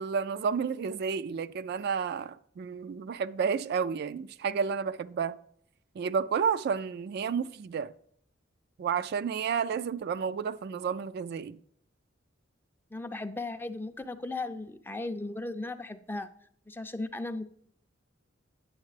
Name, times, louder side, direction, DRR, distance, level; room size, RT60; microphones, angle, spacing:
voice 1, 0.0-5.4 6.0-7.9 8.8-11.6, right 6 dB, 55° right, 0.3 m, -31 dB
voice 2, 12.9-16.3 16.7-17.5, left 2 dB, 10° left, 0.4 m, -36 dB
9.6 x 7.3 x 3.2 m
head